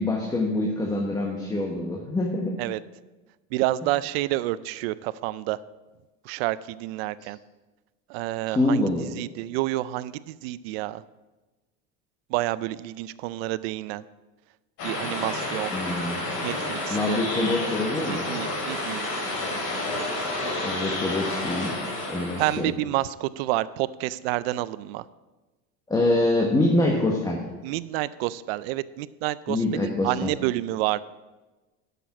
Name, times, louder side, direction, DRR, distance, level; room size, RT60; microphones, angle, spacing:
voice 1, 0.0-2.5 7.2-7.3 8.5-9.1 15.7-16.2 16.9-18.3 20.6-21.8 22.1-22.7 25.9-27.4 29.5-30.3, left 2 dB, 10° left, 0 dB, 1.1 m, -25 dB
voice 2, 3.5-5.6 6.2-7.4 8.1-8.8 9.2-11.0 12.3-14.0 14.8-15.7 16.4-17.2 18.1-19.1 22.4-25.0 27.6-31.0, right 16 dB, 80° right, 17 dB, 0.5 m, -29 dB
sound 1, 14.8-22.6, left 2 dB, 50° left, 3.4 m, -30 dB
10.0 x 6.8 x 5.9 m, 1.2 s
cardioid pair, 145°, 30 cm